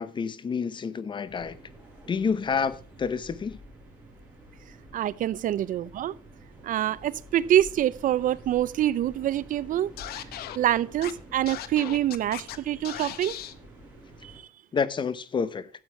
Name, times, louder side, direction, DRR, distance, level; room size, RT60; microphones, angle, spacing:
voice 1, 0.0-1.6 2.1-3.6 14.7-15.7, left 6 dB, 30° left, 0.7 m, -29 dB
sound 1, 1.3-14.4, right 1 dB, 10° right, 6.0 m, -49 dB
voice 2, 4.9-6.2 6.6-9.9 10.2-10.3 10.6-13.4 14.2-14.5, right 12 dB, 55° right, 0.6 m, -26 dB
Scratching (performance technique), 10.0-10.6 11.0-11.1 11.5-12.6 12.8-13.5, left 12 dB, 75° left, 1.0 m, -37 dB
12.5 x 8.1 x 4.4 m
cardioid pair, 130°, 16 cm